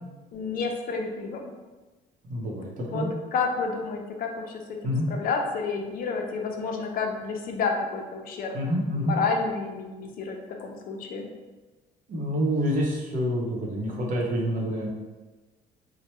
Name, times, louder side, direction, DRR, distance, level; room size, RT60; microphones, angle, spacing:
voice 1, 0.3-1.5 2.9-3.1 3.3-8.6 9.0-11.2, left 4 dB, 60° left, 2 dB, 0.5 m, -30 dB
voice 2, 2.2-3.1 4.8-5.1 8.5-9.1 12.1-14.9, equal, 50° right, -2 dB, 0.8 m, -27 dB
3.1 x 2.1 x 3.0 m, 1.2 s
cardioid pair, 110°, 17 cm